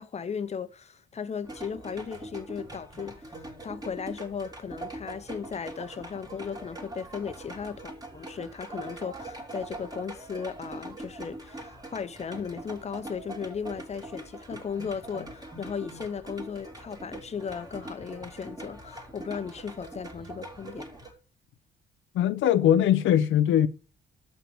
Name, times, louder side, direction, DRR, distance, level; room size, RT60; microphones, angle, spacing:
voice 1, 0.0-20.9, left 6 dB, 35° left, 0.9 m, -36 dB
sound 1, 1.4-21.1, right 1 dB, 20° right, 2.7 m, -42 dB
voice 2, 22.1-23.7, left 10 dB, 80° left, 0.8 m, -21 dB
6.8 x 5.8 x 7.2 m
cardioid pair, 90°, 20 cm